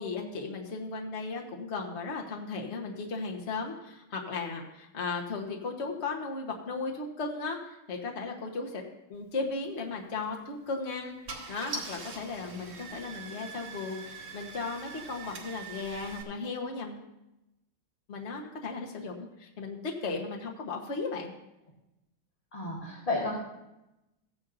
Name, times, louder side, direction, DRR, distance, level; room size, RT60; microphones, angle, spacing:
voice 1, 0.0-8.8 9.1-11.1 11.5-17.0 18.1-21.3, left 4 dB, 40° left, 0 dB, 1.3 m, -36 dB
Car / Engine starting, 10.2-10.4 11.0-11.1 11.3-16.2, right 4 dB, 85° right, 2.9 m, -42 dB
voice 2, 22.5-23.3, left 2 dB, 20° left, -5 dB, 1.5 m, -31 dB
15.0 x 9.7 x 2.6 m, 0.94 s
omnidirectional pair, 2.3 m